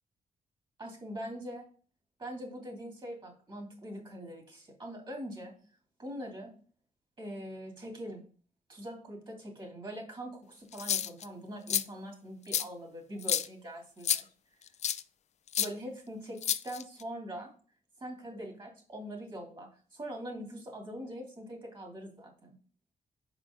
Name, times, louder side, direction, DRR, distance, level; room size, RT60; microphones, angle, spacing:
voice 1, 0.8-1.6 2.2-5.5 6.0-6.5 7.2-8.2 8.7-14.3 15.6-17.5 18.0-22.5, equal, 35° right, 1 dB, 2.7 m, -43 dB
sound 1, 10.7-11.3 11.7-11.8 12.5-12.6 13.2-13.5 14.0-14.2 14.8-15.0 15.5-15.7 16.4-17.0, left 9 dB, 50° left, 0.4 m, -29 dB
5.3 x 5.1 x 5.2 m, 0.41 s
cardioid pair, 110°, 14 cm